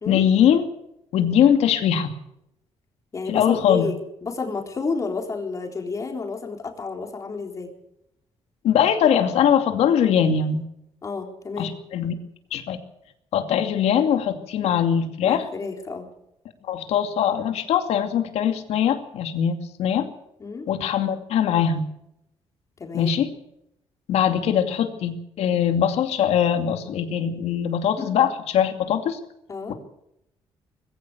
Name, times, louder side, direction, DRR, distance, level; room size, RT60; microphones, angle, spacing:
voice 1, 0.1-0.7 1.1-2.1 3.3-3.9 8.6-10.6 11.6-12.1 12.5-12.8 13.3-15.4 16.7-20.1 20.7-21.9 22.9-23.3 24.1-29.2, left 8 dB, 80° left, 7 dB, 2.6 m, -21 dB
voice 2, 3.1-4.0 4.2-7.7 11.0-11.7 15.2-16.1 20.4-20.7 22.8-23.1 28.0-28.1 29.5-29.7, left 4 dB, 30° left, 3 dB, 3.9 m, -30 dB
21.0 x 16.0 x 8.0 m, 0.80 s
cardioid pair, 145°, 11 cm